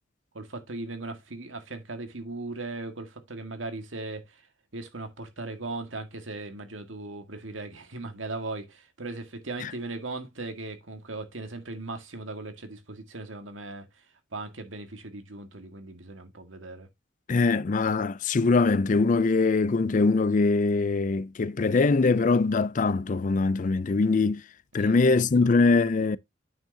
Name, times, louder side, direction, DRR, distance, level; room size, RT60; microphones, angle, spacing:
voice 1, 0.3-4.4 4.7-13.9 14.3-16.9 24.7-25.6, right 2 dB, 85° right, 1.9 m, -38 dB
voice 2, 17.3-24.4 24.7-26.2, left 3 dB, 40° left, 0.4 m, -22 dB
8.9 x 6.3 x 2.8 m
head